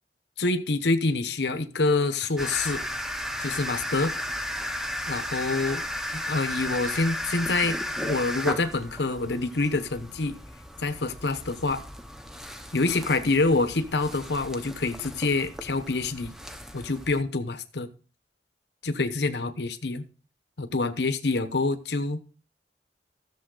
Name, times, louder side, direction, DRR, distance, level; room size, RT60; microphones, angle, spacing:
voice 1, 0.4-2.8 3.4-4.1 5.1-5.8 6.1-10.4 10.8-11.8 12.7-16.3 16.7-17.9 18.8-20.0 20.6-22.2, left 3 dB, 70° left, 1.0 m, -26 dB
sound 1, 2.4-17.2, left 1 dB, 5° right, 0.8 m, -35 dB
14.0 x 7.1 x 3.9 m
head